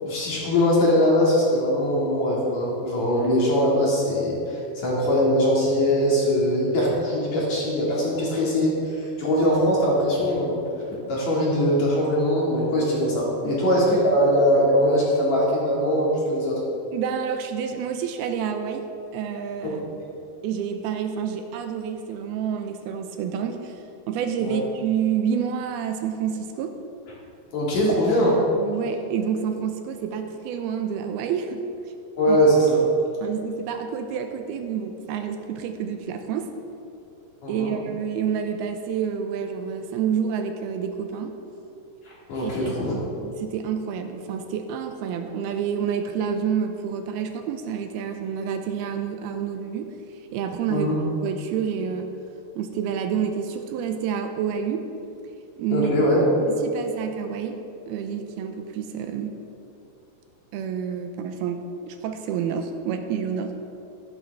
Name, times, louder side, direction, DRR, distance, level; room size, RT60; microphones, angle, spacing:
voice 1, 0.0-10.6 11.1-16.6 24.4-24.6 27.5-28.3 32.2-32.8 37.4-37.7 42.3-42.9 50.7-50.9 55.7-56.3, equal, 50° left, -5 dB, 3.2 m, -21 dB
voice 2, 16.9-18.9 19.1-20.0 20.4-26.7 27.8-27.9 28.6-31.7 32.3-32.4 33.2-36.5 37.5-41.4 42.4-49.9 50.3-50.9 51.2-52.1 52.6-54.9 55.6-55.9 56.5-57.6 57.9-59.4 60.5-63.5, right 7 dB, 85° right, 6 dB, 2.5 m, -28 dB
13.0 x 12.0 x 3.5 m, 2.8 s
omnidirectional pair, 4.6 m